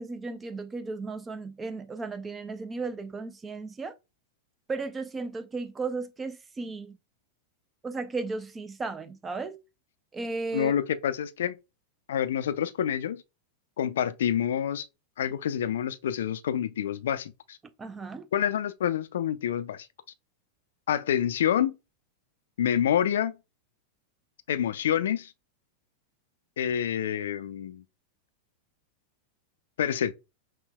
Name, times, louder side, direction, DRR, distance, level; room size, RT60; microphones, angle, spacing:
voice 1, 0.0-3.9 4.7-7.0 7.8-9.6 10.1-10.7 17.8-18.3, right 3 dB, 20° right, 0.4 m, -35 dB
voice 2, 10.5-11.5 12.1-13.2 13.8-14.9 15.2-17.6 18.3-19.9 20.9-21.7 22.6-23.4 24.5-25.3 26.6-27.8 29.8-30.1, left 9 dB, 70° left, 0.3 m, -27 dB
5.4 x 2.2 x 2.2 m
figure-of-eight pair, 95°, 0 cm